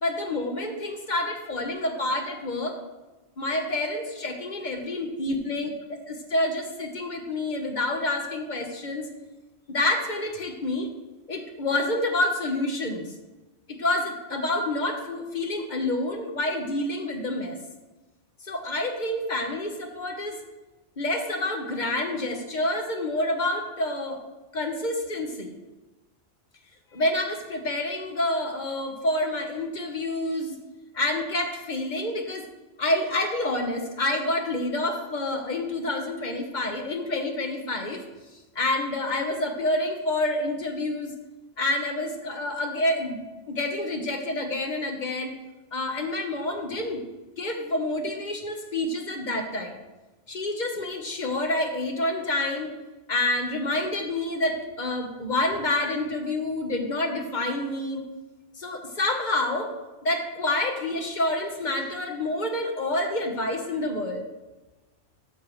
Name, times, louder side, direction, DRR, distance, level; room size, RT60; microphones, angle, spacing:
voice 1, 0.0-2.8 3.4-5.7 6.1-9.1 9.7-10.9 11.3-13.1 13.7-17.6 18.4-20.4 21.0-24.2 24.5-25.5 26.9-30.5 30.9-32.5 32.8-38.0 38.5-41.1 41.6-43.2 43.5-45.3 45.7-47.0 47.4-49.7 50.3-52.7 53.1-58.0 58.6-59.7 60.0-64.2, left 1 dB, 45° left, 4 dB, 1.2 m, -28 dB
12.5 x 7.0 x 3.1 m, 1.1 s
omnidirectional pair, 1.2 m